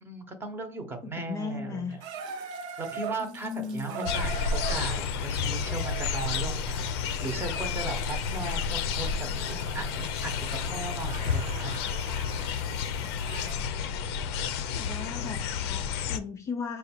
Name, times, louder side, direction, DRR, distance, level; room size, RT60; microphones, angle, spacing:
voice 1, 0.0-2.0 2.8-6.9 7.2-9.3 9.7-9.9 10.2-11.7, right 3 dB, 15° right, 6 dB, 0.8 m, -37 dB
voice 2, 1.0-2.0 3.2-4.1 14.6-16.8, left 5 dB, 25° left, 4 dB, 0.4 m, -37 dB
Water tap faucet / Bathtub (filling or washing), 2.0-13.7 14.6-14.7, right 6 dB, 65° right, 0.7 m, -42 dB
sound 1, 4.1-16.2, left 6 dB, 80° left, 0.5 m, -31 dB
4.8 x 2.3 x 4.3 m, 0.40 s
supercardioid pair, 125°, 13 cm